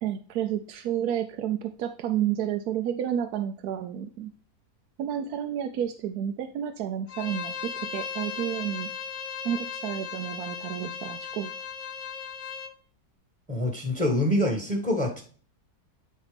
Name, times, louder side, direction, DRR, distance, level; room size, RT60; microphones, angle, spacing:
voice 1, 0.0-4.3 5.0-8.9 9.4-11.5, right 10 dB, 75° right, 6 dB, 1.1 m, -30 dB
Bowed string instrument, 7.1-12.7, left 7 dB, 55° left, 1.0 m, -37 dB
voice 2, 13.5-15.2, left 1 dB, 5° left, 2 dB, 1.4 m, -25 dB
8.9 x 4.2 x 3.3 m, 0.42 s
omnidirectional pair, 1.7 m